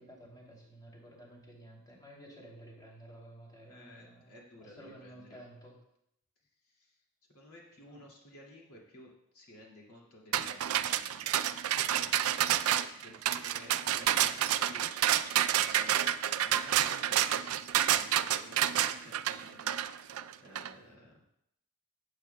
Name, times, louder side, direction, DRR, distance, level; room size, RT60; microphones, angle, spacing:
voice 1, 0.0-4.3 4.6-5.8 7.9-8.0, right 1 dB, 20° left, -3 dB, 2.7 m, -52 dB
voice 2, 3.7-5.4 6.6-7.0 7.3-11.4 11.8-12.2 13.0-14.9 15.6-16.0 16.4-20.1 20.4-21.2, left 1 dB, 80° left, -2 dB, 2.3 m, -55 dB
sound 1, 10.3-20.7, right 11 dB, 70° right, 0.4 m, -29 dB
16.5 x 8.1 x 2.2 m, 0.78 s
head